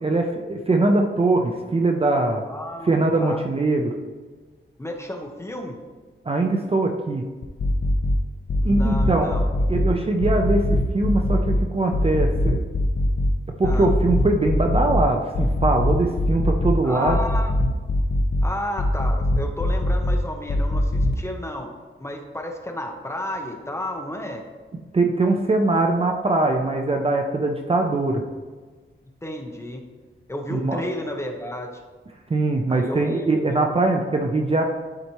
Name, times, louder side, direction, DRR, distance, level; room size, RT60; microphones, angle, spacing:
voice 1, 0.0-2.4 2.9-3.9 6.3-7.2 8.6-9.3 9.7-12.6 13.6-17.2 24.9-28.2 30.5-30.8 32.3-34.6, right 2 dB, 30° right, 3 dB, 0.5 m, -22 dB
voice 2, 2.5-3.4 4.8-5.8 8.6-9.9 13.6-13.9 16.8-17.5 18.4-21.7 22.0-24.4 29.2-29.8 30.3-31.7 32.7-33.3, left 1 dB, 15° left, 2 dB, 0.8 m, -32 dB
sound 1, 7.4-8.2 8.5-9.9 10.2-11.6 11.9-13.3 13.6-15.0 15.3-16.7 17.1-18.5 18.8-20.2 20.5-21.2, left 1 dB, 50° left, 0.6 m, -22 dB
11.5 x 4.1 x 3.0 m, 1.4 s
wide cardioid pair, 165°, 21 cm